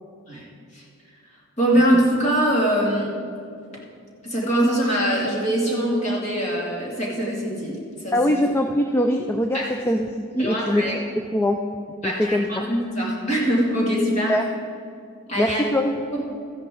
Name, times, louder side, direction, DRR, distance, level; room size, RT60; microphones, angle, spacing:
voice 1, 1.6-3.1 4.2-8.1 9.5-9.7 10.4-11.0 12.0-14.4 15.3-15.6 16.1-16.2, equal, 30° left, -4 dB, 2.6 m, -22 dB
voice 2, 8.1-10.9 11.2-11.6 12.0-12.6 14.3-14.4 15.4-15.9, left 1 dB, 10° left, 4 dB, 0.3 m, -22 dB
14.0 x 10.5 x 3.8 m, 2.4 s
head